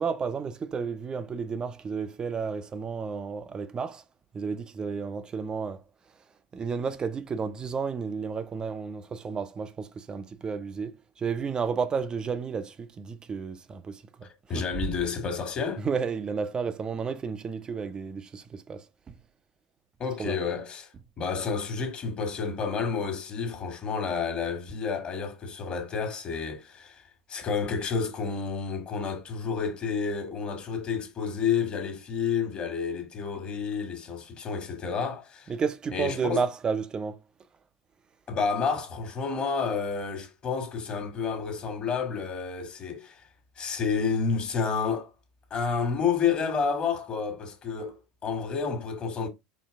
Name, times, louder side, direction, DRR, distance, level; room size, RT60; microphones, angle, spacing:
voice 1, 0.0-4.0 4.3-5.8 6.5-10.9 11.2-14.3 14.5-14.6 15.8-18.8 20.2-20.4 35.5-37.2, right 5 dB, 25° right, 0.5 m, -32 dB
voice 2, 14.5-15.8 20.0-20.9 21.2-27.0 27.3-35.5 35.9-36.4 38.3-43.2 43.6-45.1 45.5-48.0 48.2-49.3, left 6 dB, 40° left, 1.6 m, -30 dB
4.5 x 3.0 x 3.6 m
hypercardioid pair, 80°, 3 cm